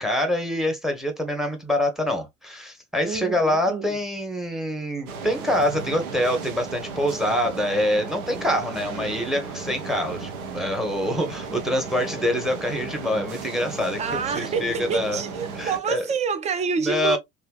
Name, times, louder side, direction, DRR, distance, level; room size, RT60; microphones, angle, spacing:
voice 1, 0.0-15.2 15.6-16.0 16.8-17.2, left 1 dB, ahead, 0.9 m, -25 dB
voice 2, 3.0-4.0 14.0-17.2, right 6 dB, 20° right, 0.4 m, -27 dB
sound 1, 5.1-15.8, right 4 dB, 80° right, 0.7 m, -35 dB
3.3 x 2.7 x 2.2 m
hypercardioid pair, 70°, 42 cm